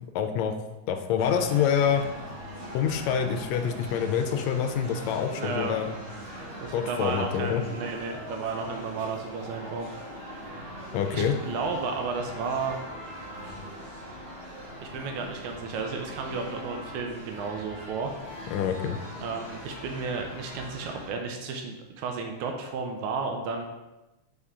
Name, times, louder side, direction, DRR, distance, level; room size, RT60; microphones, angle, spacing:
voice 1, 0.2-0.5 0.9-2.0 2.7-5.9 6.7-7.6 10.9-11.3 18.5-19.0, left 8 dB, 80° left, 6 dB, 1.8 m, -26 dB
sound 1, 1.2-21.1, equal, 60° right, 3.2 m, -41 dB
voice 2, 5.4-5.8 6.6-9.9 11.1-12.8 14.8-18.1 19.2-23.7, right 4 dB, 85° right, 3 dB, 2.1 m, -33 dB
7.1 x 4.3 x 3.6 m, 1.0 s
omnidirectional pair, 3.3 m